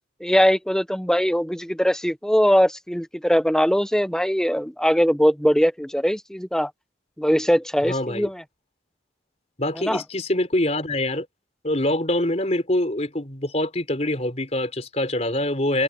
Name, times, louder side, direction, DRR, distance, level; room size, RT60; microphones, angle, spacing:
voice 1, 0.2-6.7 7.2-8.4 9.8-10.0, equal, 5° left, 1.0 m, -21 dB
voice 2, 7.9-8.3 9.6-11.3 11.6-15.8, left 1 dB, 35° left, 4.3 m, -24 dB
head